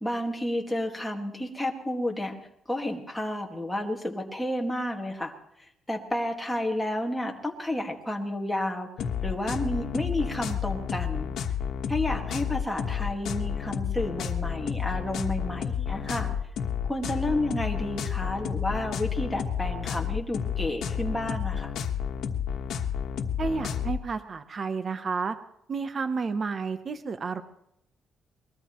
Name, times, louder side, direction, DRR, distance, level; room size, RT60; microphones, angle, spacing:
voice 1, 0.0-2.4 2.7-5.3 5.9-11.3 11.9-16.3 16.9-21.7, left 1 dB, 5° left, 0 dB, 1.8 m, -31 dB
sound 1, 9.0-24.0, left 8 dB, 75° left, 1.3 m, -31 dB
voice 2, 23.4-25.4 25.7-27.4, right 4 dB, 30° right, 10 dB, 0.8 m, -31 dB
23.0 x 20.5 x 3.1 m, 0.76 s
cardioid pair, 165°, 0 cm